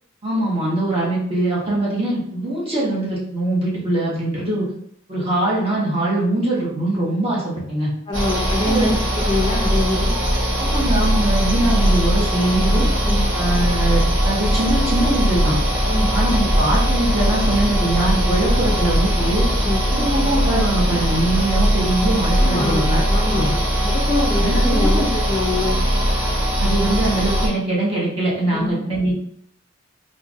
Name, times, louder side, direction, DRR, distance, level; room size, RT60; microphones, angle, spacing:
voice 1, 0.2-4.6 5.1-7.9 8.6-8.9 10.6-12.9 13.3-15.6 16.1-19.5 19.9-23.0 23.4-23.5 24.4-25.1 26.6-29.2, right 1 dB, 30° right, -5 dB, 1.2 m, -22 dB
voice 2, 8.1-8.9 9.1-10.2 13.0-13.3 15.9-16.1 19.6-19.8 22.4-25.8 28.5-28.7, left 2 dB, 25° left, -1 dB, 0.4 m, -24 dB
sound 1, 8.1-27.5, equal, 80° right, 1.2 m, -19 dB
4.4 x 2.6 x 2.4 m, 0.69 s
head